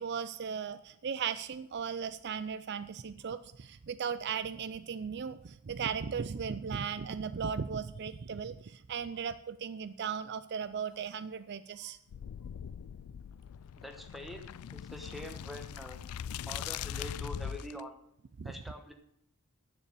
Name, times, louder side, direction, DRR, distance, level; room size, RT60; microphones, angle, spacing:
voice 1, 0.0-12.0 18.4-18.5, right 6 dB, 50° right, 14 dB, 0.4 m, -37 dB
sound 1, 12.1-17.8, left 8 dB, 90° left, 0.3 m, -41 dB
voice 2, 13.8-16.0 16.5-18.0 18.4-18.9, equal, ahead, 5 dB, 1.2 m, -45 dB
9.8 x 6.9 x 8.4 m, 0.74 s
head